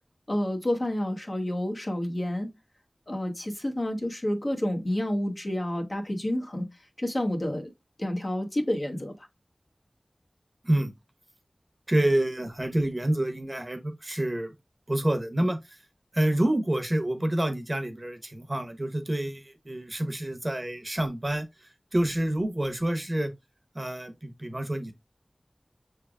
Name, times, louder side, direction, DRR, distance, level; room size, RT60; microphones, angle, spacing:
voice 1, 0.3-2.5 3.1-6.7 7.0-7.7 8.0-9.1, left 1 dB, 50° left, 1.1 m, -29 dB
voice 2, 11.9-14.5 14.9-15.8 16.1-23.3 23.7-24.9, right 1 dB, 35° right, 0.9 m, -28 dB
5.9 x 3.4 x 2.4 m
wide cardioid pair, 55°, 0 cm